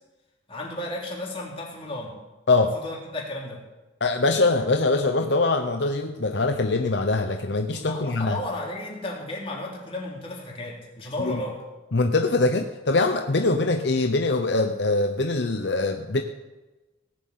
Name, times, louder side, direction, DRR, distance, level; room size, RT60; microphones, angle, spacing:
voice 1, 0.5-2.2 2.7-3.6 7.7-11.6, left 1 dB, 30° left, -2 dB, 3.6 m, -34 dB
voice 2, 4.0-8.4 11.2-11.4 11.9-16.2, left 3 dB, 70° left, 6 dB, 0.8 m, -23 dB
18.0 x 7.5 x 8.7 m, 1.1 s
head